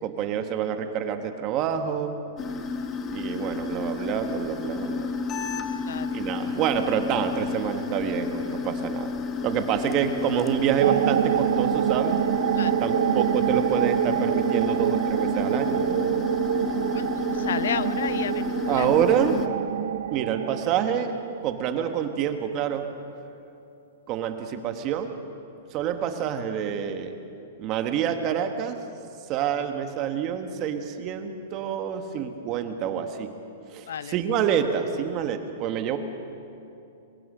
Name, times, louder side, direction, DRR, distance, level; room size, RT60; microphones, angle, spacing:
voice 1, 0.0-2.2 3.1-5.2 6.1-9.1 9.4-12.2 12.8-16.3 18.7-19.3 20.1-21.1 21.4-22.8 24.1-25.1 25.7-27.2 27.6-28.8 29.3-33.3 33.7-36.0, right 8 dB, 30° right, 7 dB, 1.3 m, -27 dB
sound 1, 2.4-19.5, left 5 dB, 20° left, 0.9 m, -31 dB
sound 2, 10.8-21.9, right 11 dB, 65° right, 0.4 m, -26 dB
voice 2, 17.4-18.4 18.7-18.9 33.9-34.1, left 9 dB, 75° left, 16 dB, 0.6 m, -31 dB
23.0 x 18.0 x 6.6 m, 2.7 s
hypercardioid pair, 165°, 0 cm